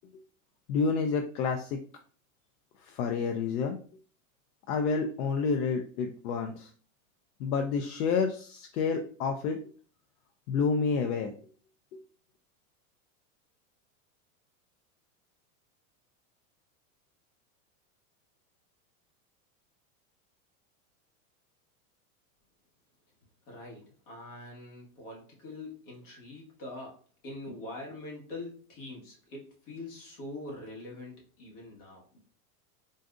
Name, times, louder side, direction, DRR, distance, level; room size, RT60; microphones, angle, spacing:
voice 1, 0.7-1.8 2.9-3.8 4.7-6.7 7.4-9.6 10.5-11.3, left 5 dB, 85° left, 5 dB, 0.6 m, -29 dB
voice 2, 23.5-32.0, left 2 dB, 55° left, -3 dB, 1.6 m, -44 dB
3.9 x 2.4 x 2.5 m, 0.43 s
supercardioid pair, 160°, 43 cm